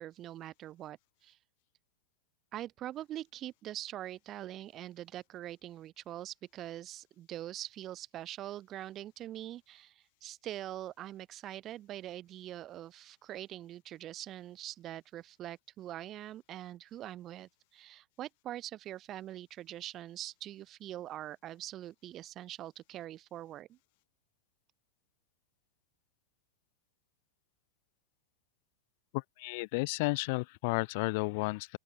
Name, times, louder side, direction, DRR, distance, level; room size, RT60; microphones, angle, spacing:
voice 1, 0.0-1.4 2.5-23.8, right 13 dB, 35° right, 3.2 m, -43 dB
voice 2, 29.1-31.8, left 27 dB, 55° left, 0.7 m, -32 dB
hypercardioid pair, 105°, 0 cm